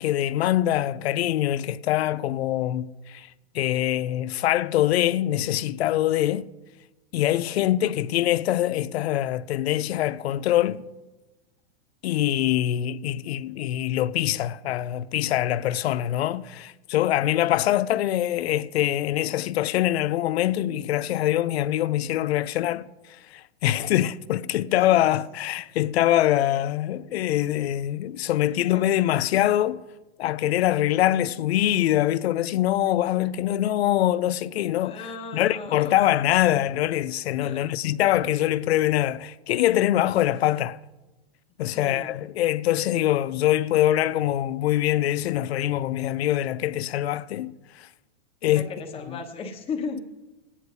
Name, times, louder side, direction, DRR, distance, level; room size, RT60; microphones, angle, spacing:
voice 1, 0.0-3.3 3.5-6.5 7.1-10.8 12.0-22.9 23.3-29.8 30.2-35.0 35.3-40.8 41.6-47.9 48.4-48.7 49.1-49.2, left 13 dB, 80° left, 0.5 m, -24 dB
voice 2, 7.3-7.9 24.9-25.1 28.7-28.8 34.8-36.0 37.4-37.6 41.7-42.2 48.4-50.0, left 4 dB, 20° left, 1.2 m, -36 dB
25.5 x 9.8 x 2.7 m
hypercardioid pair, 145°, 31 cm